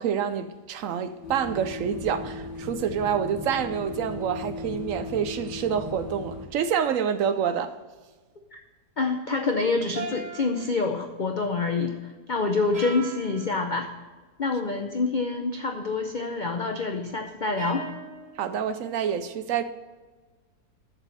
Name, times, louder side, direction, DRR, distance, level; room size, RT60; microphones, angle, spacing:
voice 1, 0.0-7.8 18.4-19.6, right 8 dB, 70° right, 0.8 m, -27 dB
sound 1, 1.2-6.5, left 3 dB, 90° left, 2.3 m, -36 dB
voice 2, 9.0-13.9 14.4-17.9, left 3 dB, 55° left, 0.5 m, -27 dB
sound 2, 9.9-11.1 12.7-13.6 17.6-18.5, right 4 dB, 40° right, 2.7 m, -39 dB
7.4 x 7.1 x 6.6 m
omnidirectional pair, 1.8 m